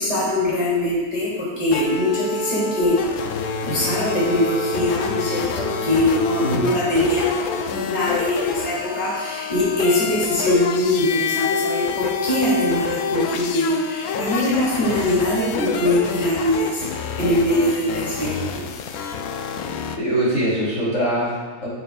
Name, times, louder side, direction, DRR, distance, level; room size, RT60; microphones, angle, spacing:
voice 1, 0.0-2.9 3.6-16.8 17.2-18.6, left 1 dB, 25° left, -8 dB, 2.5 m, -22 dB
sound 1, 1.7-20.0, left 5 dB, 75° left, 1.0 m, -28 dB
voice 2, 6.4-6.8 20.0-21.7, equal, 50° left, -8 dB, 2.9 m, -23 dB
9.6 x 8.5 x 2.3 m, 1.4 s
omnidirectional pair, 1.7 m